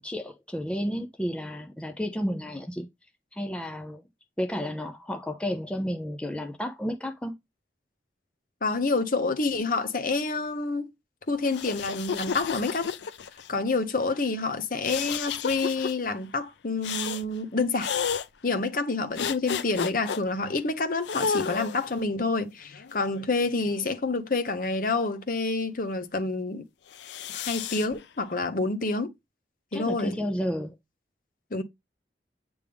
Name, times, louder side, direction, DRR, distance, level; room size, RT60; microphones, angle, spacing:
voice 1, 0.0-2.9 3.3-4.0 4.4-7.3 29.7-30.7, equal, 5° left, 0.6 m, -32 dB
voice 2, 8.6-10.9 11.3-12.9 13.5-17.9 18.4-26.7 27.3-29.1 29.7-30.2 31.5-31.6, left 3 dB, 50° left, 0.9 m, -28 dB
sound 1, 11.4-13.5 14.8-15.9 16.8-17.2 17.8-18.3 19.2-20.2 21.0-21.9 22.7-23.9 26.9-27.9, left 6 dB, 80° left, 0.5 m, -32 dB
8.1 x 3.5 x 3.4 m
head